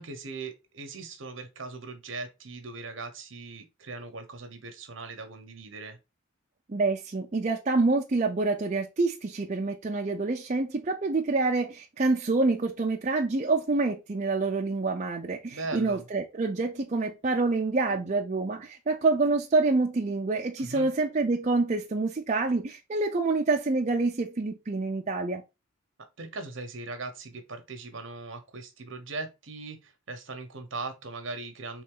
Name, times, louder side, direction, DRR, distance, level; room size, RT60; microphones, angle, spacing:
voice 1, 0.0-6.0 15.5-16.0 20.6-20.9 26.2-31.8, right 3 dB, 70° right, 0.9 m, -39 dB
voice 2, 6.7-25.4, right 3 dB, 35° right, 0.5 m, -27 dB
3.9 x 3.1 x 3.7 m
head